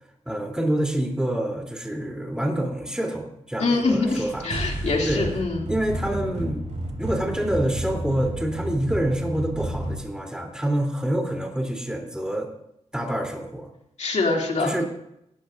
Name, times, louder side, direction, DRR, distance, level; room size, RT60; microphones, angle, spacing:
voice 1, 0.2-5.2 5.7-6.6 7.0-12.5 12.9-13.7 14.6-14.8, right 1 dB, 5° right, 2 dB, 3.2 m, -27 dB
voice 2, 3.6-5.7 14.0-14.8, left 3 dB, 65° left, 0 dB, 2.7 m, -24 dB
sound 1, 4.0-10.0, right 1 dB, 75° right, 5.3 m, -31 dB
19.5 x 12.5 x 2.6 m, 0.78 s
cardioid pair, 65°, 12 cm